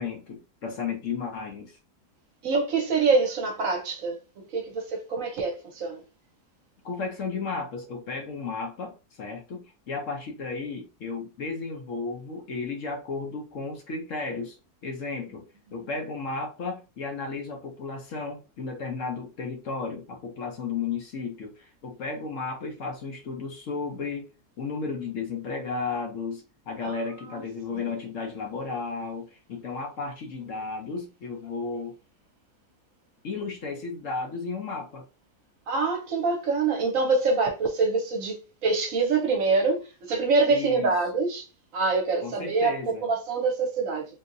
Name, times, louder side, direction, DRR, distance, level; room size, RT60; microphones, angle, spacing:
voice 1, 0.0-1.8 6.8-14.6 14.8-15.5 15.7-24.3 24.6-31.9 33.2-35.1 40.5-40.9 42.2-43.0, left 4 dB, 60° left, 1.0 m, -34 dB
voice 2, 2.4-6.0 26.8-26.9 27.3-27.4 35.7-41.4 41.7-44.0, right 4 dB, 60° right, 1.0 m, -25 dB
3.7 x 2.7 x 2.6 m
omnidirectional pair, 1.7 m